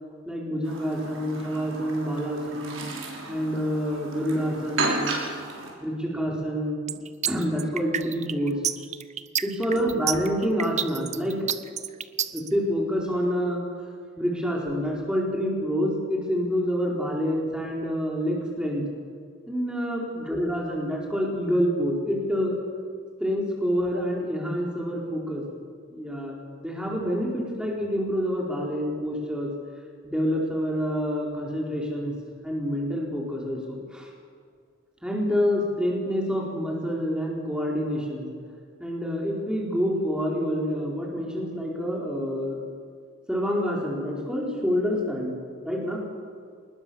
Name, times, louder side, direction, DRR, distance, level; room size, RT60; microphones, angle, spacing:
voice 1, 0.3-2.8 3.3-5.1 5.8-7.0 7.3-8.6 9.4-11.4 12.3-13.6 14.2-18.8 19.5-22.6 23.2-25.4 25.9-29.5 30.0-32.1 32.4-34.1 35.0-38.3 38.8-42.6 43.3-45.4 45.6-46.0, equal, 5° right, -3 dB, 4.4 m, -27 dB
Chirp tweet, 0.6-5.7, right 3 dB, 75° right, 6.0 m, -33 dB
sound 1, 6.9-12.5, right 9 dB, 35° right, 0.8 m, -29 dB
26.5 x 20.5 x 7.1 m, 2.2 s
head